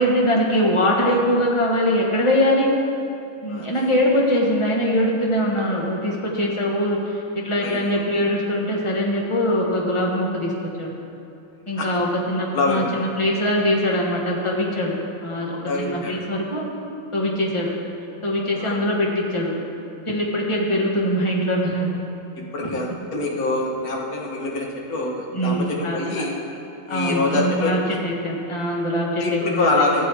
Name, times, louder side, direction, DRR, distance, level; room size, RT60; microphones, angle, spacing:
voice 1, 0.0-2.7 3.4-7.1 7.4-10.5 10.8-11.0 11.7-15.0 15.2-16.7 17.1-17.7 18.2-19.5 20.1-22.0 25.3-26.3 26.9-29.8, equal, 20° left, -2 dB, 1.1 m, -22 dB
voice 2, 3.5-3.9 7.6-8.2 11.8-11.9 12.5-12.9 15.7-16.2 18.6-18.8 22.5-26.4 26.9-27.7 29.2-30.1, left 2 dB, 50° left, -1 dB, 1.5 m, -25 dB
15.0 x 7.7 x 3.5 m, 2.8 s
omnidirectional pair, 2.2 m